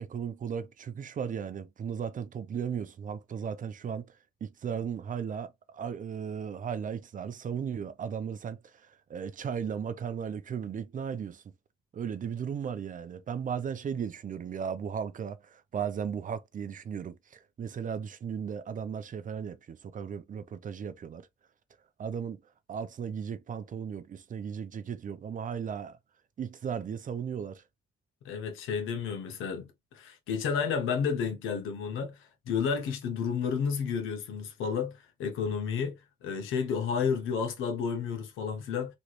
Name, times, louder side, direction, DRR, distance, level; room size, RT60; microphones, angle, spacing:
voice 1, 0.0-11.4 11.9-21.3 22.0-22.4 22.7-26.0 26.4-27.6, right 7 dB, 40° right, 0.5 m, -36 dB
voice 2, 28.2-32.2 32.5-34.9 35.2-38.9, left 6 dB, 90° left, 0.9 m, -31 dB
3.1 x 2.4 x 3.0 m
cardioid pair, 90°, 20 cm